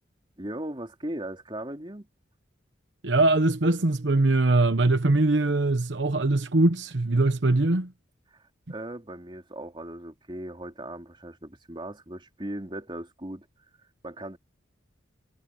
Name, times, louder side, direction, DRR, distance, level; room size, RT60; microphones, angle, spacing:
voice 1, 0.4-2.1 8.3-8.4 8.7-13.5 14.0-14.4, right 1 dB, 25° right, 3.2 m, -38 dB
voice 2, 3.0-7.9, right 2 dB, 70° right, 1.0 m, -22 dB
head